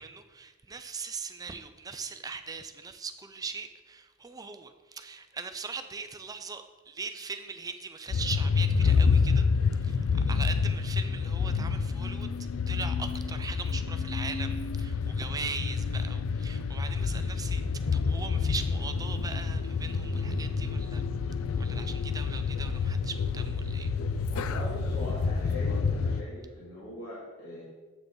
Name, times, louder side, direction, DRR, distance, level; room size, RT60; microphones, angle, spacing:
voice 1, 0.0-9.5 9.7-12.3 12.7-17.6 17.9-21.0 21.6-23.9, right 5 dB, 15° right, 8 dB, 0.4 m, -40 dB
sound 1, 8.1-26.2, left 5 dB, 65° left, 0.4 m, -28 dB
voice 2, 24.2-27.6, left 1 dB, 50° left, -10 dB, 2.1 m, -41 dB
8.1 x 5.9 x 3.8 m, 1.3 s
head